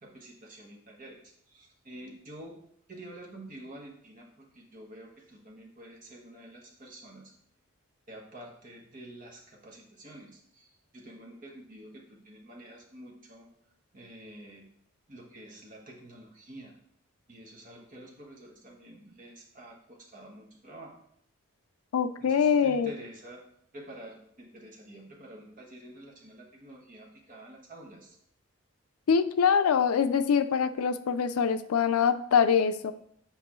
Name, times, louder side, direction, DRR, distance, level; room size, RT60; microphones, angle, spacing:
voice 1, 0.0-2.6 2.9-7.3 8.1-13.5 13.9-14.6 15.1-16.8 17.3-21.0 22.2-23.4 23.7-28.2, right 1 dB, 40° right, -1 dB, 1.3 m, -48 dB
voice 2, 21.9-22.9 29.1-32.9, left 6 dB, 85° left, 12 dB, 0.4 m, -24 dB
7.5 x 5.3 x 3.1 m, 0.69 s
head